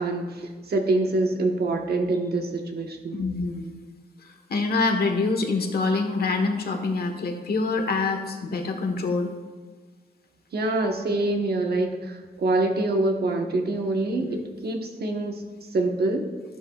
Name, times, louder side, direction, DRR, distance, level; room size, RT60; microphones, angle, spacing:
voice 1, 0.0-3.2 10.5-16.3, right 2 dB, 70° right, 3 dB, 1.3 m, -25 dB
voice 2, 3.1-3.7 4.5-9.3, left 3 dB, 65° left, 4 dB, 1.3 m, -25 dB
13.0 x 11.5 x 2.4 m, 1.4 s
wide cardioid pair, 150°, 17 cm